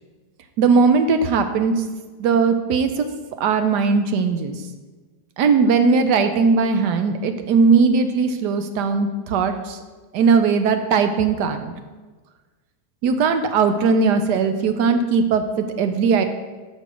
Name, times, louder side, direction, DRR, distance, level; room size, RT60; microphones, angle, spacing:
voice 1, 0.6-1.8 2.2-3.1 3.4-4.5 5.4-9.8 10.1-11.7 13.0-16.2, right 5 dB, 90° right, 8 dB, 1.3 m, -19 dB
6.4 x 5.3 x 6.1 m, 1.3 s
omnidirectional pair, 1.8 m